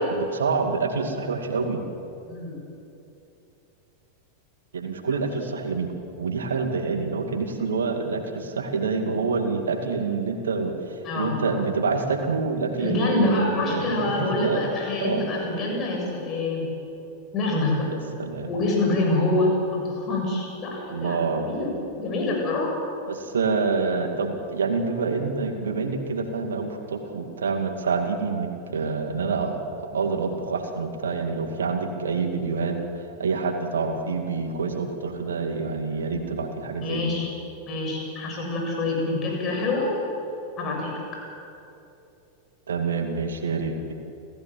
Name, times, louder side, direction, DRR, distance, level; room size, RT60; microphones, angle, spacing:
voice 1, 0.1-1.8 4.7-14.7 15.0-15.2 17.9-18.5 20.9-21.5 23.1-37.1 42.7-43.9, right 4 dB, 65° right, 5 dB, 2.3 m, -27 dB
voice 2, 11.0-11.4 12.8-16.7 17.3-17.9 18.5-21.7 22.0-22.7 36.8-37.3 37.7-39.9 40.6-41.0, left 2 dB, 30° left, 0 dB, 7.3 m, -26 dB
29.5 x 15.0 x 7.6 m, 2.8 s
figure-of-eight pair, 90°, 0 cm